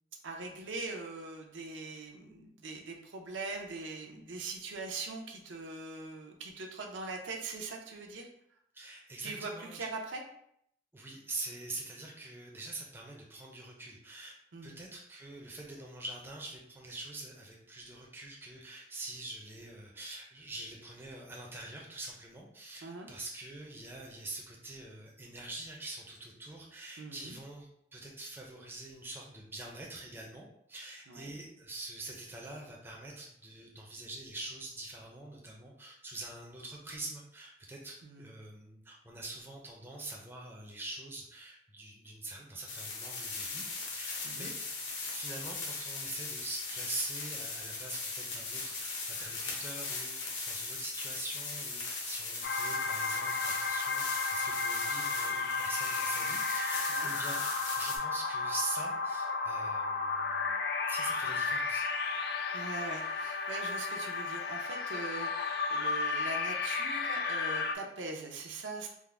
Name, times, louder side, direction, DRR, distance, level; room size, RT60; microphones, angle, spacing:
voice 1, 0.2-8.3 9.2-10.2 14.5-14.7 22.8-23.1 27.0-27.3 31.1-31.3 38.0-38.3 44.2-44.5 56.9-57.1 62.5-68.9, right 3 dB, 80° right, 2 dB, 0.6 m, -42 dB
voice 2, 8.7-9.8 10.9-14.3 14.6-43.6 43.9-44.5 45.1-57.4 57.8-60.6 60.9-61.9, right 2 dB, 10° right, -2 dB, 0.4 m, -44 dB
sound 1, 42.7-58.0, left 3 dB, 80° left, 0.9 m, -39 dB
sound 2, 52.4-67.7, left 4 dB, 55° left, 0.3 m, -33 dB
3.6 x 2.0 x 3.3 m, 0.72 s
head